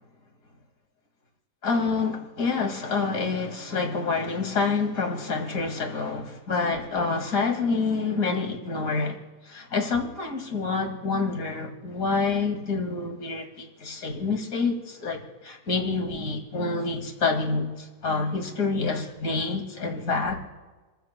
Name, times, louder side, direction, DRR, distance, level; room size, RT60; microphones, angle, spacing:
voice 1, 1.6-9.2 9.5-20.4, left 4 dB, 30° left, 3 dB, 2.0 m, -27 dB
30.0 x 15.0 x 2.2 m, 1.3 s
omnidirectional pair, 3.6 m